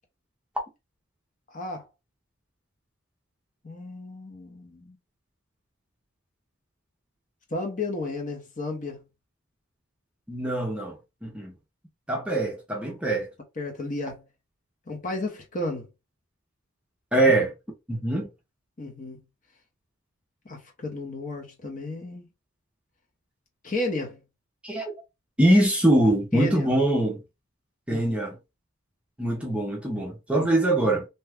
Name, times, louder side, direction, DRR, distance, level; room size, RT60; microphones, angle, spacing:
voice 1, 1.5-1.8 3.6-5.0 7.5-9.0 13.6-14.2 14.9-15.9 18.8-19.2 20.4-22.3 23.6-24.2 26.3-26.7 27.9-28.2 30.4-30.6, left 2 dB, 40° left, 0.8 m, -33 dB
voice 2, 10.3-11.0 11.2-11.5 12.1-13.3 17.1-17.5 17.9-18.3 24.6-24.9 25.4-27.2 27.9-28.3 29.2-31.0, right 1 dB, 5° right, 0.6 m, -23 dB
2.8 x 2.3 x 3.4 m
head